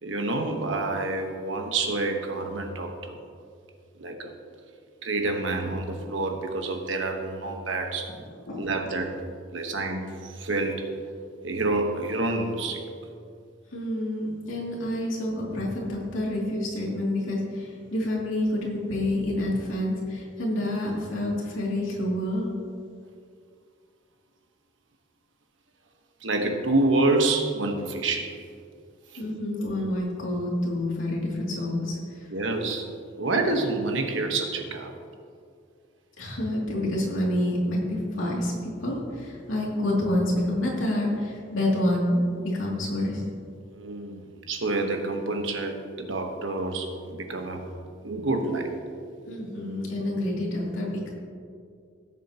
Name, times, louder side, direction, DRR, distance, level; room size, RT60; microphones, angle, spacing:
voice 1, 0.0-3.2 4.0-4.3 5.0-8.1 8.6-9.2 9.5-10.9 11.4-12.9 15.0-15.1 26.2-28.4 29.1-29.2 32.3-32.9 33.2-34.9 43.7-47.6 48.0-48.7, right 2 dB, 80° right, 4 dB, 1.2 m, -28 dB
voice 2, 8.3-8.6 13.7-22.5 29.2-32.3 36.2-43.2 49.3-51.1, left 1 dB, 90° left, -3 dB, 2.6 m, -28 dB
17.0 x 7.3 x 2.9 m, 2.3 s
head